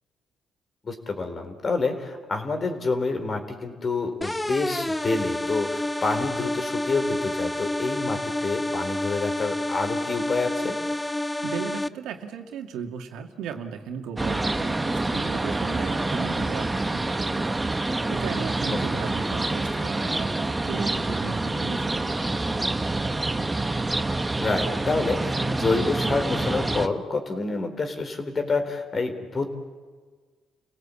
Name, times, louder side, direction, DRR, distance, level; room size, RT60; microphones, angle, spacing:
voice 1, 0.8-10.8 18.9-19.0 24.4-29.5, left 3 dB, 40° left, 7 dB, 4.0 m, -28 dB
sound 1, 4.2-11.9, left 1 dB, 10° left, 0.6 m, -29 dB
voice 2, 11.4-17.7 18.1-22.6, right 7 dB, 90° right, 4 dB, 2.4 m, -36 dB
sound 2, 14.2-26.9, right 2 dB, 15° right, 1.3 m, -27 dB
30.0 x 17.5 x 8.5 m, 1.5 s
cardioid pair, 90°, 0 cm